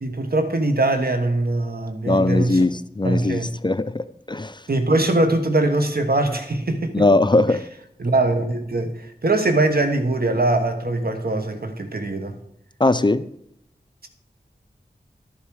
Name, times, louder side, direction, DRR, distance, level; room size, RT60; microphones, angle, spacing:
voice 1, 0.0-2.6 3.0-3.5 4.7-7.0 8.0-12.4, right 2 dB, 65° right, 7 dB, 1.3 m, -22 dB
voice 2, 2.1-4.6 6.9-7.6 12.8-13.2, left 2 dB, 25° left, 13 dB, 0.5 m, -20 dB
12.0 x 7.1 x 4.8 m, 0.73 s
wide cardioid pair, 50°, 17 cm